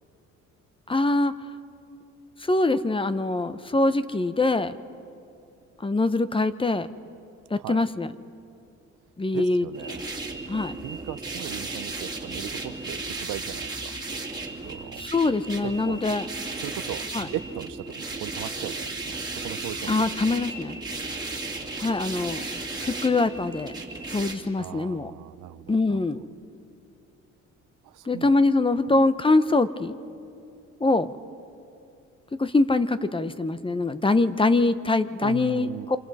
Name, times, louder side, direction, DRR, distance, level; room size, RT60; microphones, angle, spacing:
voice 1, 0.9-1.3 2.4-4.8 5.8-6.9 7.5-8.1 9.2-9.7 10.5-10.7 15.0-16.2 17.1-17.3 19.9-20.8 21.8-22.5 22.8-23.7 24.1-25.1 25.7-26.2 28.1-30.0 30.8-31.1 32.4-36.0, left 2 dB, 15° left, 13 dB, 0.8 m, -23 dB
voice 2, 9.3-10.0 10.8-14.0 14.7-15.1 15.6-16.0 16.6-19.9 20.3-20.4 24.6-26.1 27.8-28.3 35.2-35.9, right 13 dB, 80° right, 15 dB, 0.7 m, -38 dB
sound 1, 9.7-24.3, right 3 dB, 15° right, 2.6 m, -35 dB
28.0 x 26.5 x 4.2 m, 2.6 s
cardioid pair, 90°, 30 cm